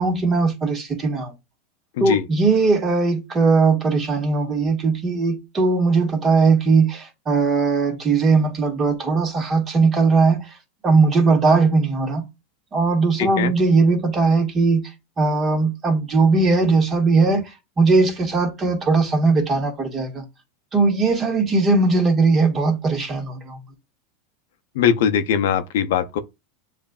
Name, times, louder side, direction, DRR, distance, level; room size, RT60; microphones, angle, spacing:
voice 1, 0.0-1.3 2.0-10.5 10.8-12.2 12.7-14.8 15.2-20.2 20.7-23.6, right 4 dB, 25° right, 1.5 m, -19 dB
voice 2, 13.2-13.5 24.8-26.2, left 8 dB, 75° left, 0.6 m, -21 dB
7.0 x 2.6 x 2.3 m
supercardioid pair, 115°, 0 cm